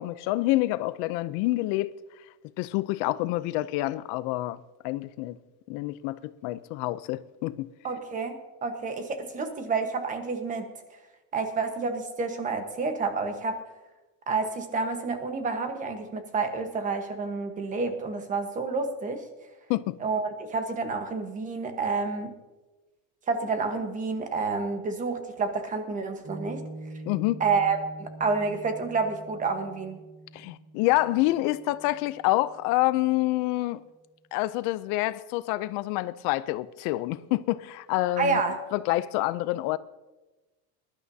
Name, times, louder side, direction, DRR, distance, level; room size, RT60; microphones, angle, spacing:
voice 1, 0.0-1.9 2.6-5.4 5.7-7.7 19.7-20.0 27.1-27.4 30.3-33.8 34.3-38.4 38.7-39.8, left 18 dB, 80° left, 0.6 m, -27 dB
voice 2, 7.8-10.7 11.3-13.6 14.3-19.3 20.0-22.3 23.3-26.6 27.4-30.0 38.2-38.6, right 4 dB, 25° right, 1.2 m, -29 dB
Piano, 26.2-32.9, right 2 dB, 55° right, 4.4 m, -44 dB
21.5 x 12.0 x 2.8 m
cardioid pair, 170°, 31 cm